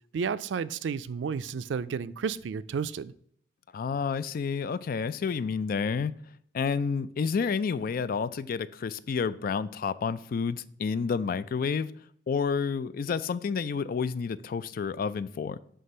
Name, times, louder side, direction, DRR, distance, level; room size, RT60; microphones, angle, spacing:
voice 1, 0.1-3.1, right 6 dB, 90° right, 0.4 m, -32 dB
voice 2, 3.7-6.1 6.5-11.9 12.3-15.6, left 5 dB, 55° left, 0.3 m, -30 dB
7.6 x 3.4 x 5.4 m
head